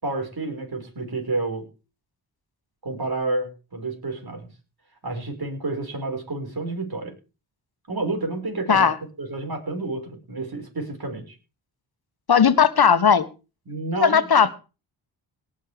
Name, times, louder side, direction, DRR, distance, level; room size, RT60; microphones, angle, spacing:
voice 1, 0.0-1.6 2.8-4.5 5.0-7.1 7.9-8.9 9.2-11.4 13.7-14.2, right 2 dB, 50° right, 4 dB, 5.8 m, -29 dB
voice 2, 12.3-13.3 14.0-14.5, left 7 dB, 50° left, 12 dB, 1.5 m, -17 dB
18.5 x 6.6 x 5.2 m, 0.32 s
cardioid pair, 45°, 48 cm